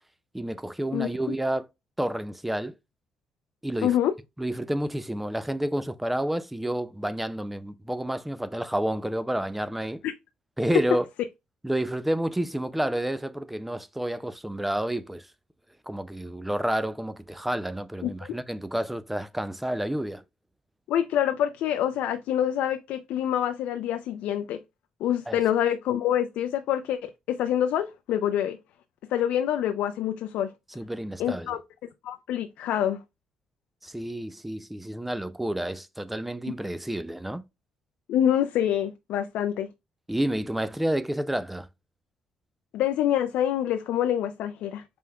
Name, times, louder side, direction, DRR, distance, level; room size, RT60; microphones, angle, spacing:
voice 1, 0.3-1.7 2.0-2.7 3.6-4.0 4.4-10.0 10.6-11.1 11.6-15.3 15.9-20.2 25.3-25.4 30.8-31.6 33.8-37.4 40.1-41.7, right 1 dB, 5° right, 0.3 m, -29 dB
voice 2, 3.8-4.1 10.0-10.1 18.0-18.3 20.9-24.6 25.0-28.6 29.1-30.5 31.2-31.6 32.0-33.0 38.1-39.7 42.7-44.8, left 10 dB, 90° left, 0.3 m, -26 dB
5.1 x 3.4 x 2.2 m
cardioid pair, 125°, 2 cm